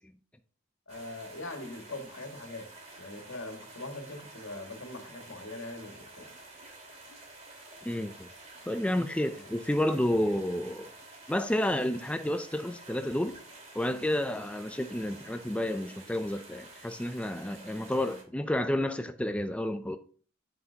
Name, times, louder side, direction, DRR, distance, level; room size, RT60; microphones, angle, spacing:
voice 1, 0.9-2.7 3.0-6.3 8.8-8.9 9.2-9.5, left 2 dB, 85° left, 1.9 m, -42 dB
sound 1, 0.9-18.2, right 2 dB, 35° right, 2.8 m, -50 dB
voice 2, 7.9-8.3 8.7-10.9 11.3-13.4 13.7-20.0, left 1 dB, 5° left, 0.4 m, -30 dB
8.0 x 7.8 x 2.8 m
head